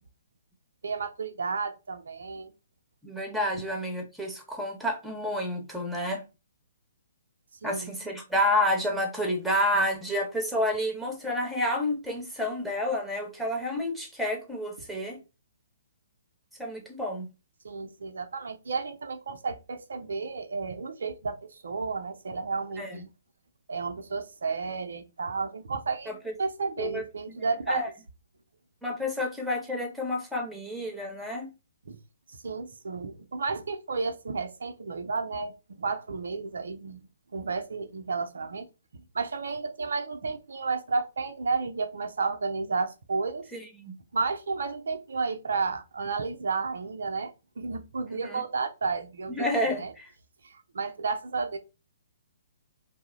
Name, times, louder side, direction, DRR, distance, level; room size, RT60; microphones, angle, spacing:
voice 1, 0.8-2.5 7.6-7.9 17.6-23.1 23.7-26.1 26.4-27.8 31.9-32.0 32.3-38.7 38.9-43.5 44.1-49.9 50.4-51.6, right 4 dB, 70° right, 0.5 m, -32 dB
voice 2, 3.0-6.2 7.6-15.2 16.6-17.3 22.8-23.0 26.1-26.2 26.8-27.0 27.7-27.9 28.8-31.5 43.5-43.9 48.2-48.4 49.3-50.1, left 1 dB, ahead, 0.8 m, -29 dB
2.7 x 2.0 x 3.6 m
figure-of-eight pair, 130°, 0 cm